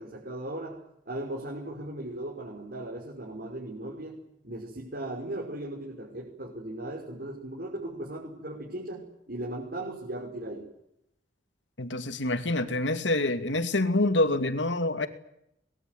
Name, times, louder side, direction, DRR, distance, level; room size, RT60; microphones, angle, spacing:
voice 1, 0.0-10.7, right 1 dB, 55° right, 5.9 m, -37 dB
voice 2, 11.8-15.1, left 2 dB, 80° left, 2.4 m, -26 dB
24.0 x 22.0 x 9.6 m
head